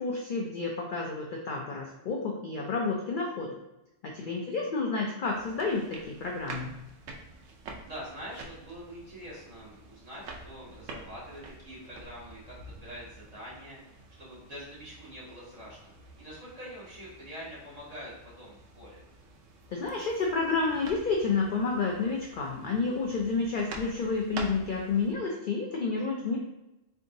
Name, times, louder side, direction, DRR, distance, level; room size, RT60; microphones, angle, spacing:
voice 1, 0.0-3.6 4.0-6.7 19.7-26.4, left 4 dB, 60° left, 0 dB, 0.5 m, -30 dB
voice 2, 4.2-4.5 7.8-19.0, equal, 30° right, -8 dB, 1.6 m, -45 dB
sound 1, 5.2-25.1, right 3 dB, 80° right, 1.0 m, -47 dB
3.8 x 3.4 x 2.6 m, 0.93 s
omnidirectional pair, 1.3 m